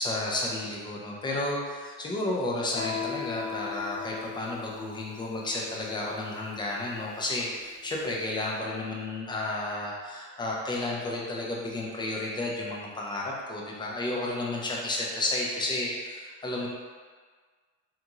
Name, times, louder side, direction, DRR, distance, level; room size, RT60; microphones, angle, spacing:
voice 1, 0.0-16.7, left 2 dB, 10° left, -3 dB, 0.3 m, -32 dB
Guitar, 2.8-8.2, left 7 dB, 60° left, 1.0 m, -39 dB
3.5 x 2.5 x 2.9 m, 1.5 s
cardioid pair, 120°, 48 cm